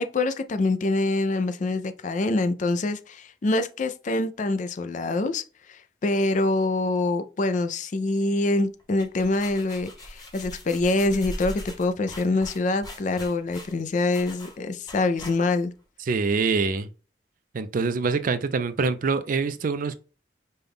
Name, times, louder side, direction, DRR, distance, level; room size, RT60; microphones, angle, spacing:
voice 1, 0.0-15.7, left 2 dB, 45° left, 0.4 m, -25 dB
sound 1, 8.8-15.7, left 1 dB, 20° left, 1.1 m, -40 dB
voice 2, 16.0-16.9 17.5-20.0, right 4 dB, 50° right, 0.4 m, -25 dB
5.4 x 2.2 x 3.5 m
head